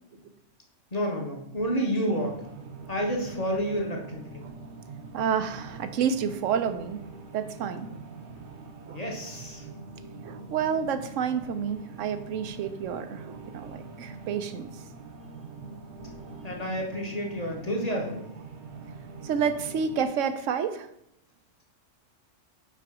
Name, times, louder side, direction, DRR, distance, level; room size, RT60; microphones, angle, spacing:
voice 1, 0.9-2.4 2.9-4.5 8.4-8.5 8.9-9.7 16.4-18.3, equal, 35° left, 0 dB, 1.0 m, -30 dB
sound 1, 2.1-20.0, right 3 dB, 65° right, 1.1 m, -44 dB
voice 2, 5.1-7.0 7.3-7.9 8.9-9.0 10.2-14.7 19.2-20.9, right 7 dB, 85° right, 9 dB, 1.0 m, -29 dB
5.7 x 4.9 x 4.8 m, 0.79 s
omnidirectional pair, 1.3 m